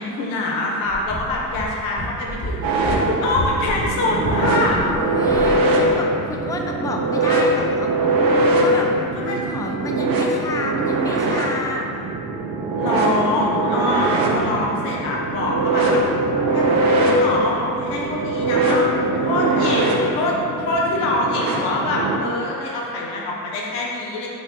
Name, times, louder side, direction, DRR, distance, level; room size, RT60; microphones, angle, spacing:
voice 1, 0.0-4.8 9.1-9.4 12.8-16.0 16.5-18.9 19.1-24.3, left 2 dB, 85° left, -3 dB, 0.8 m, -24 dB
sound 1, 0.9-5.0 5.3-5.6, equal, 55° left, 1.4 m, -30 dB
sound 2, 2.6-22.2, right 2 dB, 65° right, 0.7 m, -21 dB
voice 2, 4.8-7.9 8.6-8.9 9.2-12.0, left 2 dB, 10° left, 1 dB, 0.4 m, -29 dB
4.7 x 2.7 x 3.6 m, 2.7 s
hypercardioid pair, 60°, 37 cm